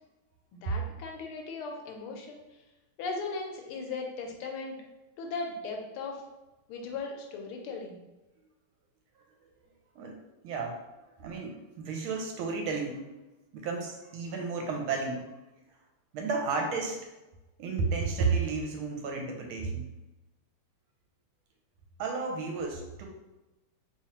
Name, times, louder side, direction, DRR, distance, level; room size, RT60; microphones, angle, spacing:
voice 1, 0.5-2.4 3.0-4.8 5.2-6.2 6.7-8.0, left 3 dB, 80° left, 2 dB, 1.5 m, -37 dB
voice 2, 10.4-10.8 11.2-13.1 13.5-15.3 16.1-17.0 17.6-19.9 22.0-23.1, right 4 dB, 75° right, 2 dB, 1.4 m, -32 dB
3.5 x 3.1 x 2.9 m, 1.1 s
omnidirectional pair, 2.4 m